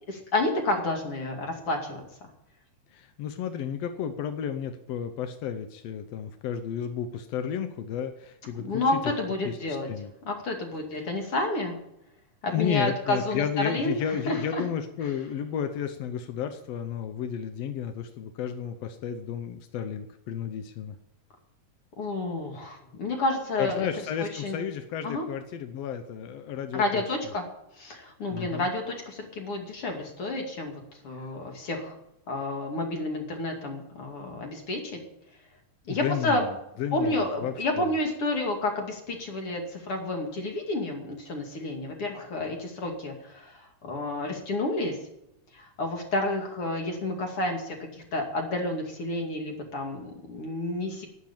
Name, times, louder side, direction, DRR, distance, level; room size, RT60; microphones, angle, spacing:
voice 1, 0.1-2.0 8.6-9.9 10.2-11.8 12.4-14.6 22.0-23.9 24.2-24.6 25.0-25.2 26.7-27.4 27.8-31.9 32.3-35.0 35.9-36.4 36.9-45.0 45.5-51.1, left 2 dB, 45° left, 2 dB, 3.0 m, -30 dB
voice 2, 2.9-8.8 9.4-10.1 12.5-21.0 23.6-27.0 28.3-28.7 31.2-31.3 35.9-37.9, left 8 dB, 75° left, 8 dB, 1.5 m, -32 dB
11.0 x 10.0 x 8.8 m, 0.82 s
omnidirectional pair, 4.0 m